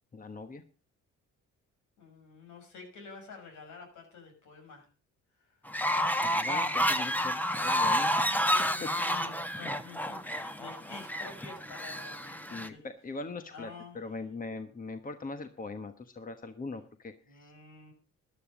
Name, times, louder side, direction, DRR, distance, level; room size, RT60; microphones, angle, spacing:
voice 1, 0.1-0.6 6.2-9.1 12.5-17.5, left 3 dB, 30° left, 8 dB, 1.3 m, -41 dB
voice 2, 2.0-4.9 5.4-5.8 8.3-12.8 13.5-14.2 17.3-17.9, left 4 dB, 75° left, 3 dB, 6.6 m, -49 dB
Fowl, 5.7-12.7, equal, 5° left, 1.2 m, -30 dB
13.5 x 11.5 x 5.1 m, 0.36 s
cardioid pair, 90°, 30 cm